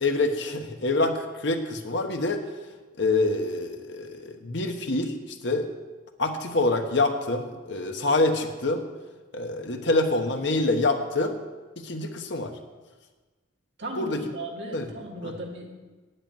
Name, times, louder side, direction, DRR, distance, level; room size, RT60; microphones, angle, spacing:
voice 1, 0.0-2.4 3.0-5.7 6.2-8.8 9.3-11.4 11.8-12.5 14.0-14.2 14.7-14.9 15.2-15.3, left 2 dB, 60° left, 5 dB, 1.2 m, -26 dB
voice 2, 13.8-15.7, right 1 dB, 60° right, 0 dB, 2.1 m, -36 dB
9.1 x 8.0 x 9.1 m, 1.3 s
head